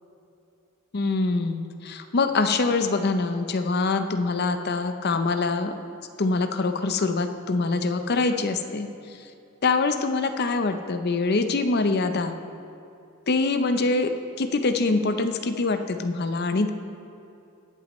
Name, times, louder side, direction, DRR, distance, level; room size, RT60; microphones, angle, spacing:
voice 1, 0.9-5.7 6.2-8.9 9.6-12.4 13.3-14.1 14.4-16.7, left 3 dB, 45° left, 8 dB, 0.6 m, -24 dB
19.0 x 8.2 x 3.1 m, 2.7 s
head